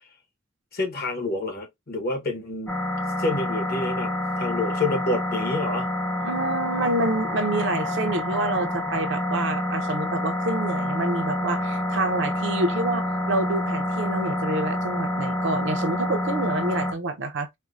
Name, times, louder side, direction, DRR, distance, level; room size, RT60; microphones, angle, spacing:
voice 1, 0.7-2.7 3.2-5.9, left 2 dB, 50° left, 1.0 m, -28 dB
sound 1, 2.7-16.9, left 1 dB, 5° left, 0.6 m, -27 dB
voice 2, 6.2-17.5, right 2 dB, 60° right, 0.6 m, -27 dB
4.4 x 2.1 x 2.4 m
head